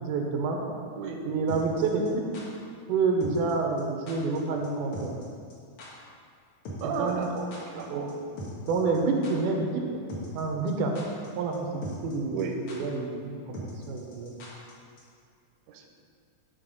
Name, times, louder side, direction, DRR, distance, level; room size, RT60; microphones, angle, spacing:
voice 1, 0.0-0.6 1.2-2.2 2.9-5.2 7.0-7.3 7.9-8.1 8.7-10.0 10.3-10.9 11.4-13.6 13.9-14.3, right 4 dB, 85° right, 2 dB, 2.4 m, -28 dB
sound 1, 1.5-2.4 3.2-3.5 3.8-3.9 4.1-4.4 4.6-4.7 4.9-5.2 5.5-5.6 5.8-5.9 6.6-7.8 8.1-8.2 8.4-9.0 9.2-9.3 10.1-10.4 10.7-11.3 11.5-11.6 11.8-12.1 12.4-12.5 12.7-12.8 13.5-14.7 15.0-15.1, left 1 dB, 55° left, 2.0 m, -40 dB
voice 2, 6.8-8.1 12.3-12.5 15.7-15.9, right 5 dB, 70° right, 2 dB, 1.9 m, -33 dB
11.5 x 3.9 x 5.3 m, 2.2 s
omnidirectional pair, 3.6 m